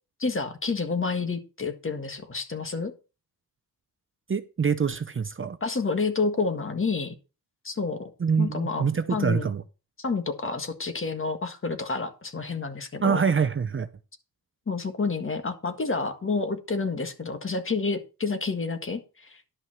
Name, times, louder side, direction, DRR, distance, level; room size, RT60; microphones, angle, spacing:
voice 1, 0.2-2.9 5.6-7.2 7.6-8.1 8.4-9.5 10.0-13.2 14.7-19.4, left 4 dB, 35° left, 1.7 m, -29 dB
voice 2, 4.3-5.6 8.2-9.6 13.0-13.9, right 6 dB, 35° right, 0.7 m, -25 dB
11.0 x 5.8 x 5.8 m
wide cardioid pair, 120°, 36 cm